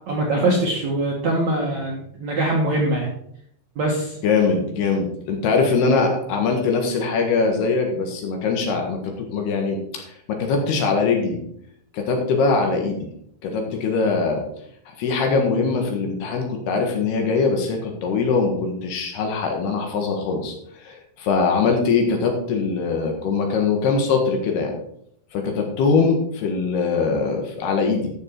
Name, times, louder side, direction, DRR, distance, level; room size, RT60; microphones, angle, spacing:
voice 1, 0.1-3.1 3.8-4.2, right 1 dB, 60° right, -1 dB, 1.9 m, -22 dB
voice 2, 4.2-11.4 11.9-13.1 13.4-14.4 14.9-24.7 25.3-28.1, left 4 dB, 70° left, 3 dB, 3.5 m, -22 dB
12.0 x 7.1 x 4.5 m, 0.70 s
omnidirectional pair, 5.1 m